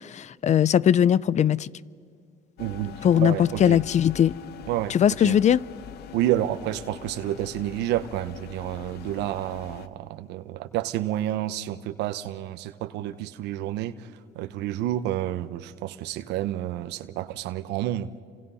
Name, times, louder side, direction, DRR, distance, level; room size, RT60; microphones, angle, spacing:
voice 1, 0.0-1.7 3.0-4.3 4.9-5.6, left 9 dB, 45° left, 0.6 m, -20 dB
sound 1, 2.6-9.9, left 9 dB, 75° left, 1.3 m, -43 dB
voice 2, 2.6-3.8 4.7-4.9 5.2-5.4 6.1-14.1 14.3-18.1, right 13 dB, 90° right, 0.9 m, -29 dB
30.0 x 26.5 x 5.6 m
cardioid pair, 110°, 17 cm